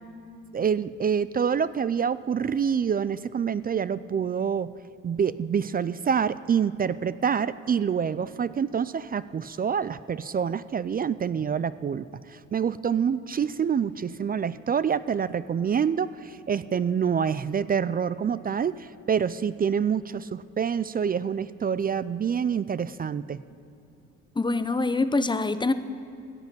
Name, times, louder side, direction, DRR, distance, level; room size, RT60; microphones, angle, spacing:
voice 1, 0.5-4.7 5.0-12.0 12.3-23.4, right 7 dB, 30° right, 16 dB, 0.4 m, -26 dB
voice 2, 24.4-25.7, left 3 dB, 15° left, 12 dB, 0.7 m, -24 dB
14.5 x 8.1 x 9.1 m, 2.8 s
cardioid pair, 90°, 30 cm